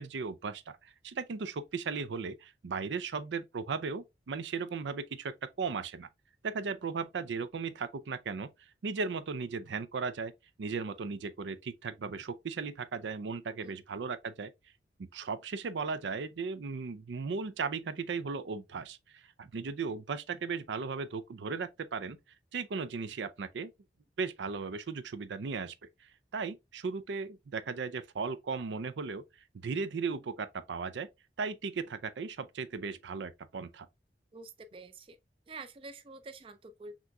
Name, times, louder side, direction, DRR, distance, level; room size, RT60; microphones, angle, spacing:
voice 1, 0.0-6.1 6.4-8.5 8.8-10.3 10.6-14.5 15.0-22.2 22.5-23.7 24.2-25.7 26.0-29.2 29.5-31.1 31.4-33.9, right 5 dB, 90° right, 0.5 m, -36 dB
voice 2, 34.3-35.2 35.5-37.0, right 3 dB, 30° right, 0.4 m, -47 dB
5.9 x 2.9 x 2.3 m
head